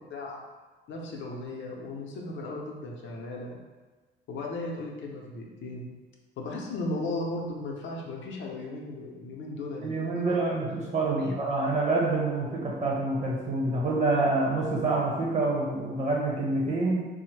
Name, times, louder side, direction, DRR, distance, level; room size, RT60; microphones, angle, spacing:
voice 1, 0.1-0.4 0.9-3.6 4.3-5.9 6.4-10.4 11.2-11.3, left 2 dB, 70° left, -1 dB, 0.6 m, -36 dB
voice 2, 9.8-17.0, right 2 dB, 35° right, -3 dB, 0.9 m, -27 dB
3.1 x 2.0 x 3.1 m, 1.3 s
cardioid pair, 90°, 20 cm